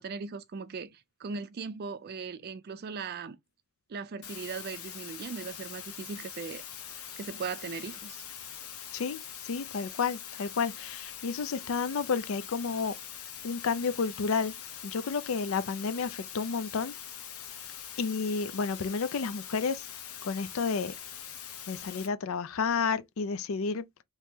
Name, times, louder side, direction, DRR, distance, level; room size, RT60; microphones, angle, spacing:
voice 1, 0.0-3.4 3.9-6.6 7.2-8.2, right 5 dB, 45° right, 0.4 m, -39 dB
sound 1, 4.2-22.1, left 9 dB, 85° left, 0.8 m, -43 dB
voice 2, 8.9-12.9 13.4-14.5 14.8-16.9 18.0-19.9 20.2-20.9 21.7-23.9, left 5 dB, 65° left, 0.4 m, -31 dB
3.0 x 2.8 x 3.5 m
head